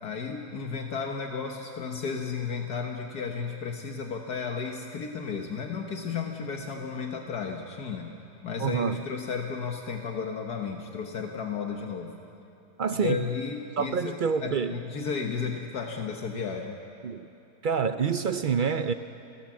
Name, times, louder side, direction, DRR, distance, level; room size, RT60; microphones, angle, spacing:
voice 1, 0.0-8.1 8.4-12.1 12.9-16.8, left 5 dB, 75° left, 2 dB, 1.8 m, -33 dB
voice 2, 8.6-9.0 12.8-13.2 13.8-14.8 17.0-17.3 17.6-18.9, right 6 dB, 85° right, 9 dB, 0.4 m, -27 dB
29.0 x 17.5 x 7.5 m, 2.8 s
omnidirectional pair, 1.7 m